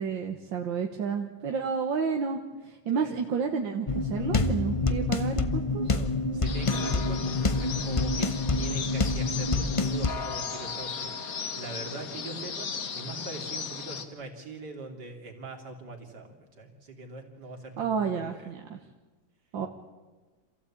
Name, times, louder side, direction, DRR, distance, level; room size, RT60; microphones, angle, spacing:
voice 1, 0.0-5.9 17.8-18.8 19.5-19.7, right 6 dB, 80° right, 3 dB, 2.0 m, -31 dB
sound 1, 3.9-10.1, left 3 dB, 30° left, 0.6 m, -27 dB
voice 2, 5.8-18.5, right 3 dB, 60° right, 3 dB, 3.3 m, -42 dB
sound 2, 6.4-14.0, left 6 dB, 50° left, 1.6 m, -36 dB
27.5 x 15.0 x 8.6 m, 1.3 s
omnidirectional pair, 2.0 m